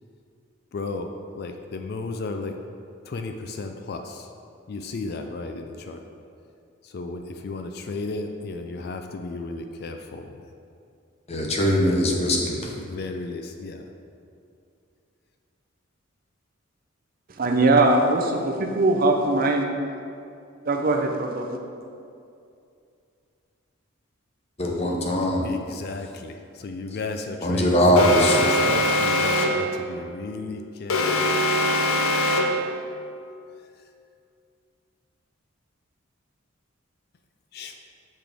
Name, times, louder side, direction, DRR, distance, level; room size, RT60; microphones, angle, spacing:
voice 1, 0.7-2.5 3.0-4.3 4.7-6.0 6.8-10.4 12.7-13.9 25.4-31.3 37.5-37.7, left 3 dB, 50° left, 5 dB, 0.3 m, -34 dB
voice 2, 11.3-12.7 24.6-25.5 27.4-28.5, equal, 30° left, 0 dB, 0.7 m, -21 dB
voice 3, 17.4-19.7 20.6-21.6, right 2 dB, 45° right, 3 dB, 0.5 m, -21 dB
Alarm, 28.0-29.7 30.9-32.7, left 1 dB, 85° left, 0.6 m, -22 dB
6.5 x 6.0 x 3.4 m, 2.5 s
head